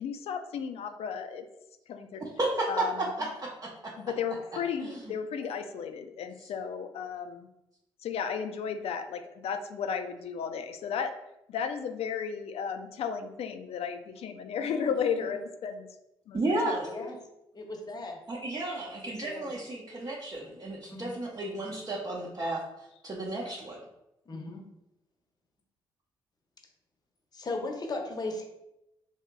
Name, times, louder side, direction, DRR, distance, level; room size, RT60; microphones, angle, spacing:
voice 1, 0.0-1.4 1.9-2.2 2.7-2.9 4.0-7.5 8.0-11.1 11.5-15.9 16.3-16.4 16.6-16.7 17.0-17.1 24.3-24.6, left 7 dB, 55° left, 7 dB, 0.4 m, -34 dB
voice 2, 2.2-3.5 4.8-5.1 6.4-6.5 16.3-16.9 18.3-23.8, right 2 dB, 30° right, -4 dB, 0.7 m, -33 dB
voice 3, 14.6-15.4 16.9-17.1 17.5-18.2 19.2-19.5 20.9-21.1 24.3-24.6 27.3-28.4, left 2 dB, 35° left, 2 dB, 0.8 m, -37 dB
3.4 x 2.7 x 2.2 m, 0.89 s
hypercardioid pair, 45°, 12 cm